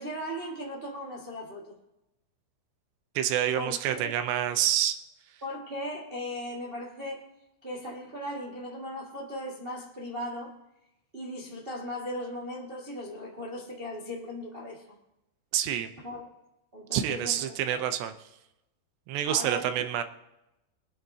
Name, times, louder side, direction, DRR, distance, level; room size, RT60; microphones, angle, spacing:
voice 1, 0.0-1.7 3.5-4.1 5.4-7.2 7.6-10.5 11.1-14.8 16.0-16.3 16.7-17.9 19.3-19.7, equal, 40° right, -3 dB, 0.7 m, -37 dB
voice 2, 3.2-5.0 15.5-15.9 16.9-18.1 19.1-20.0, right 11 dB, 80° right, 9 dB, 3.0 m, -27 dB
24.0 x 9.8 x 2.9 m, 0.90 s
omnidirectional pair, 4.9 m